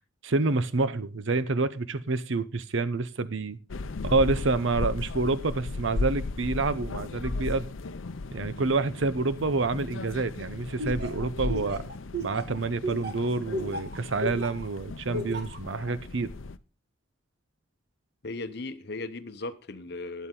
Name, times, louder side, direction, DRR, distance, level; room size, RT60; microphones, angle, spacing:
voice 1, 0.2-3.6 4.0-7.7 8.3-11.8 12.2-16.3, right 3 dB, 70° right, 0.7 m, -28 dB
sound 1, 3.7-16.6, left 3 dB, 80° left, 0.6 m, -36 dB
Laughter, 10.8-14.7 15.1-15.6, right 1 dB, 55° right, 1.5 m, -33 dB
voice 2, 18.2-20.3, left 2 dB, 55° left, 0.9 m, -37 dB
12.5 x 9.4 x 3.8 m
head